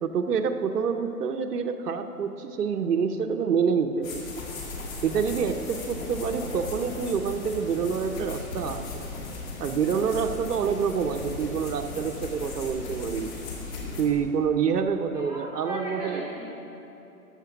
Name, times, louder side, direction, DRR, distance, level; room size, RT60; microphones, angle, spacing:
voice 1, 0.0-4.2 5.0-8.8 9.6-13.3 14.0-16.2, right 6 dB, 80° right, 5 dB, 0.9 m, -27 dB
sound 1, 4.0-14.0, left 3 dB, 60° left, 2.6 m, -37 dB
voice 2, 15.6-16.5, right 1 dB, 5° right, -8 dB, 0.5 m, -36 dB
14.0 x 6.1 x 6.0 m, 3.0 s
hypercardioid pair, 155°, 46 cm